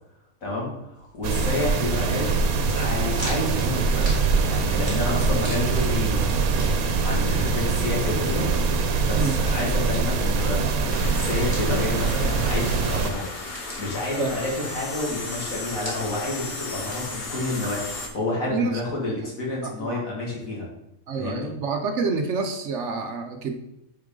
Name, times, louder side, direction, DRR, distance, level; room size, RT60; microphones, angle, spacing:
voice 1, 0.4-2.4 2.7-6.3 7.0-8.5 9.1-13.3 13.8-17.8 18.1-20.7 21.2-21.5, left 2 dB, 70° left, -3 dB, 2.4 m, -29 dB
sound 1, 0.9-17.7, right 1 dB, 35° right, 2.9 m, -45 dB
sound 2, 1.2-13.1, right 4 dB, 80° right, 1.2 m, -23 dB
sound 3, 10.9-18.1, left 3 dB, 45° left, 1.2 m, -35 dB
voice 2, 18.5-18.8 19.6-20.0 21.1-23.5, right 4 dB, 60° right, 5 dB, 0.9 m, -28 dB
8.3 x 4.7 x 3.7 m, 0.86 s
omnidirectional pair, 1.5 m